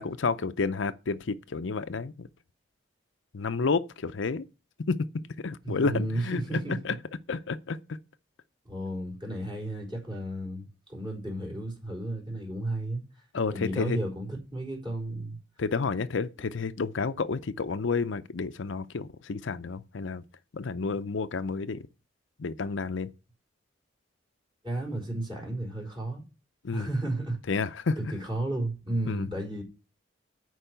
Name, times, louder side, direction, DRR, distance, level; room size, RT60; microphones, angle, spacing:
voice 1, 0.0-2.3 3.3-4.4 4.9-5.1 5.4-7.0 7.3-8.0 13.3-14.0 15.6-20.2 20.5-21.8 22.4-23.1 26.6-26.9 27.5-28.1 29.1-29.3, left 4 dB, 75° left, 0.6 m, -30 dB
voice 2, 5.6-6.8 8.6-13.0 13.5-15.4 24.6-26.2 26.7-27.4 28.0-29.6, right 1 dB, 25° right, 4.2 m, -33 dB
10.0 x 4.8 x 8.0 m
head